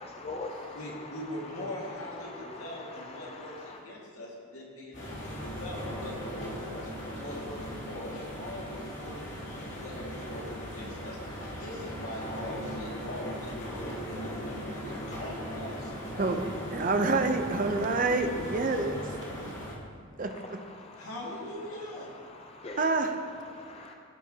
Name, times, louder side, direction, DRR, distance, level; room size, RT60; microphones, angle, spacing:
voice 1, 0.0-3.8 20.2-21.1 21.6-23.9, left 2 dB, 30° left, 2 dB, 0.5 m, -44 dB
voice 2, 0.7-16.4 21.0-22.1, left 1 dB, 85° left, -3 dB, 2.0 m, -42 dB
sound 1, 4.9-19.7, equal, 55° left, 2.7 m, -38 dB
voice 3, 16.2-19.0 19.4-19.5 20.2-20.6 22.8-23.2, right 3 dB, 40° right, 6 dB, 0.5 m, -28 dB
15.5 x 7.2 x 2.8 m, 2.2 s
head